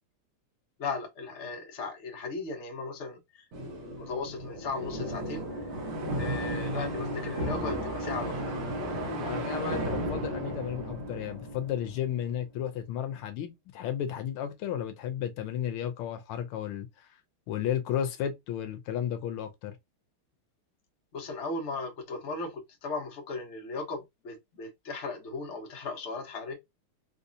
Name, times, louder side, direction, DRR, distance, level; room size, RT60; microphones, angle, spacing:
voice 1, 0.8-3.5 4.0-5.7 6.2-8.6 21.1-26.5, left 3 dB, 45° left, 1.1 m, -37 dB
sound 1, 3.5-12.3, right 1 dB, 65° right, 1.7 m, -34 dB
voice 2, 9.2-17.1 17.5-19.8, left 9 dB, 80° left, 1.4 m, -33 dB
4.0 x 2.6 x 2.6 m
omnidirectional pair, 2.4 m